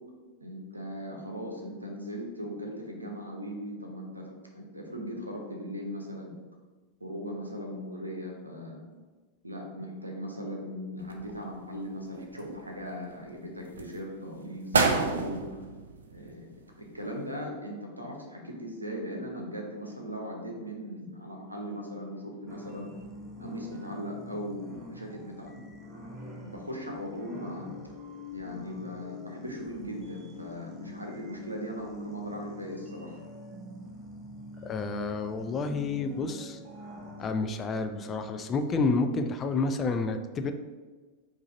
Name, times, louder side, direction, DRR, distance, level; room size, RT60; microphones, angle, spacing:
voice 1, 0.4-6.4 7.0-8.8 9.4-15.4 16.0-16.5 16.8-22.9 23.4-25.6 26.4-27.7 28.3-33.2, equal, 85° right, 1 dB, 0.8 m, -39 dB
sound 1, 11.0-11.8 12.2-13.0 13.6-13.9 14.4-14.5 14.7-16.6 16.9-17.0, right 4 dB, 70° right, 0.4 m, -29 dB
sound 2, 22.5-37.3, left 2 dB, 20° right, 0.8 m, -45 dB
voice 2, 34.6-36.6 37.2-40.5, left 3 dB, 25° left, 7 dB, 0.4 m, -29 dB
4.9 x 2.7 x 3.9 m, 1.3 s
figure-of-eight pair, 90°, 0 cm